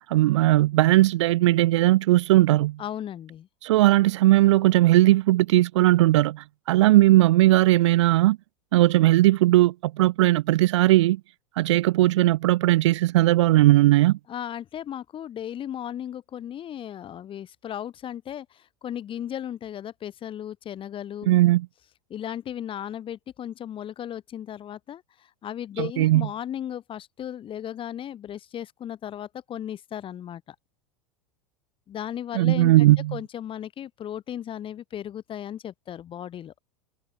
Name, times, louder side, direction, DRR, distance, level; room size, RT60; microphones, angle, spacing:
voice 1, 0.1-2.8 3.6-8.4 8.7-11.2 11.6-14.2 21.3-21.7 25.8-26.3 32.3-33.2, right 16 dB, 60° right, 1.3 m, -18 dB
voice 2, 2.8-3.5 14.3-21.3 22.1-30.6 31.9-36.5, left 10 dB, 30° left, 6.8 m, -36 dB
figure-of-eight pair, 90°, 17 cm